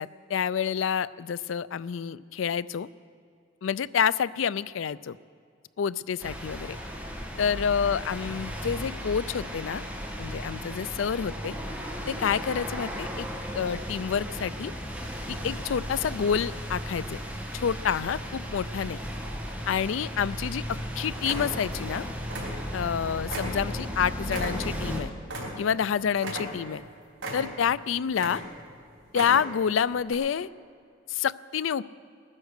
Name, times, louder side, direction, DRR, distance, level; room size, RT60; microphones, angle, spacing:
voice 1, 0.0-2.9 3.6-5.2 5.8-6.8 7.4-9.8 10.2-11.5 12.1-13.3 13.5-14.7 15.3-17.2 17.5-19.0 19.7-22.1 22.7-25.1 25.6-26.8 27.3-28.4 29.1-30.5 31.1-31.8, left 7 dB, 75° left, 18 dB, 0.4 m, -28 dB
sound 1, 6.2-25.0, equal, 10° right, 1.4 m, -35 dB
sound 2, 20.1-20.3 20.7-20.9 21.2-21.9 22.2-22.9 23.3-25.9 26.2-26.8 27.2-27.7 28.1-28.7 29.0-29.6 30.1-30.2, right 1 dB, 90° right, 3.6 m, -37 dB
20.5 x 9.8 x 6.5 m, 2.4 s
head